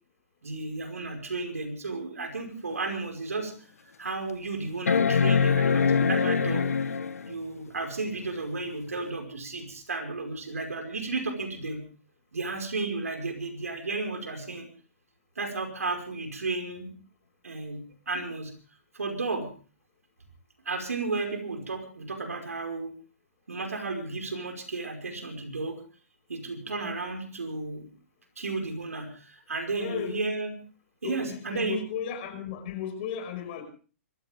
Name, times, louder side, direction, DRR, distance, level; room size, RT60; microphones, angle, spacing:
voice 1, 0.4-3.5 4.0-6.7 7.3-11.8 12.3-14.7 15.4-16.9 17.4-18.5 18.9-19.5 20.7-22.9 23.5-25.8 26.3-27.9 28.4-30.5 31.0-31.8, right 3 dB, 90° right, 4 dB, 5.3 m, -33 dB
sound 1, 2.7-2.8 3.4-3.5 4.9-7.3 9.0-9.1, left 6 dB, 80° left, 1.4 m, -23 dB
voice 2, 29.8-30.2 31.0-33.6, left 8 dB, 45° left, 7 dB, 5.5 m, -35 dB
25.5 x 14.5 x 3.6 m, 0.38 s
hypercardioid pair, 135°, 8 cm